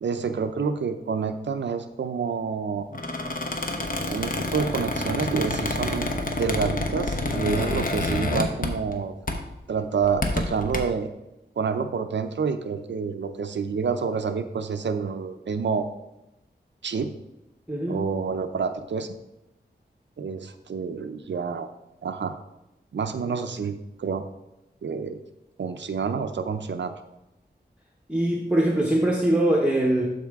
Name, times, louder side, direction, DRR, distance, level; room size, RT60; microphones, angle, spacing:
voice 1, 0.0-2.9 4.1-6.1 6.4-9.1 9.7-11.1 11.6-15.9 16.8-17.1 17.9-19.2 20.2-21.7 22.0-22.4 22.9-24.2 24.8-25.2 25.6-27.0, right 5 dB, 85° right, 8 dB, 0.6 m, -28 dB
Squeak, 2.9-9.0 9.3-9.5 10.0-10.8, left 2 dB, 50° left, 1.0 m, -28 dB
voice 2, 17.7-18.1 28.1-30.1, right 1 dB, 5° right, -2 dB, 0.9 m, -22 dB
12.0 x 4.3 x 3.5 m, 0.92 s
wide cardioid pair, 100°, 18 cm